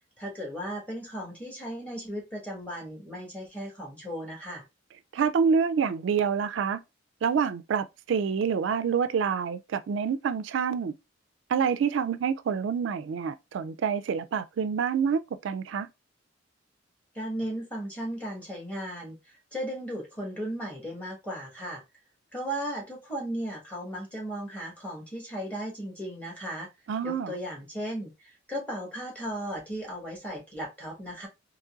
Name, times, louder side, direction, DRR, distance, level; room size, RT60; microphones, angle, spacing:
voice 1, 0.2-4.6 17.1-19.2 19.5-21.8 22.3-26.7 27.0-28.1 28.5-31.3, equal, 5° left, 1.4 m, -36 dB
voice 2, 5.1-6.8 7.2-10.9 11.5-15.9 26.9-27.3, right 6 dB, 65° right, 0.3 m, -27 dB
3.8 x 2.9 x 2.4 m
head